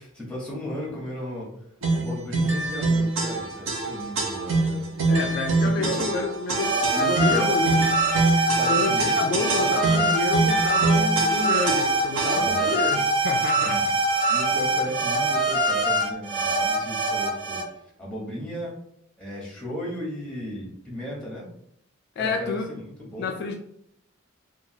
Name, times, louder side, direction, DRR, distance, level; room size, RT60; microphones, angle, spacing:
voice 1, 0.0-1.5 1.9-4.9 5.6-6.1 6.9-7.7 8.6-10.1 12.3-12.8 13.6-13.8 14.3-17.6 18.0-18.8 19.2-21.5 22.2-23.3, equal, 5° left, -3 dB, 0.8 m, -35 dB
sound 1, 1.8-12.7, right 3 dB, 70° right, 0.6 m, -25 dB
voice 2, 5.1-7.9 8.7-13.8 22.2-22.7 23.2-23.5, left 4 dB, 50° left, 2 dB, 0.3 m, -29 dB
sound 2, 6.5-17.6, right 2 dB, 55° right, 1.2 m, -23 dB
2.9 x 2.2 x 2.7 m, 0.72 s
head